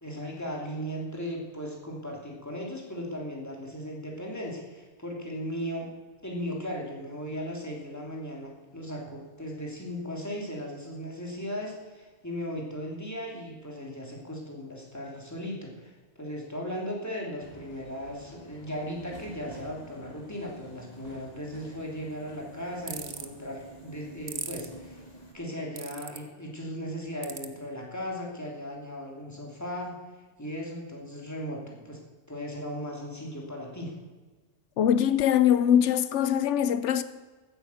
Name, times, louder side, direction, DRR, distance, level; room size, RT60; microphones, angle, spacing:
voice 1, 0.0-5.9 6.2-25.0 25.3-30.0 30.4-32.0 32.3-33.9, equal, 15° left, 3.0 m, -37 dB
Subway metro underground, 17.4-25.3, equal, 35° left, 2.4 m, -49 dB
sound 1, 22.9-23.3 24.3-24.7 25.8-26.2 27.2-27.5, right 7 dB, 65° right, 1.2 m, -36 dB
voice 2, 34.8-37.0, left 9 dB, 90° left, 1.0 m, -22 dB
14.5 x 8.9 x 8.4 m
omnidirectional pair, 1.2 m